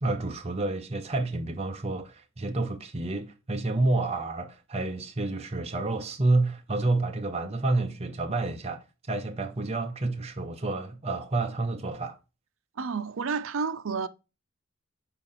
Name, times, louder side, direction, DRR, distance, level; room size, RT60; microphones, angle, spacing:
voice 1, 0.0-12.2, right 2 dB, 30° right, 0.7 m, -29 dB
voice 2, 12.8-14.1, right 5 dB, 75° right, 0.6 m, -30 dB
5.8 x 4.8 x 3.9 m
head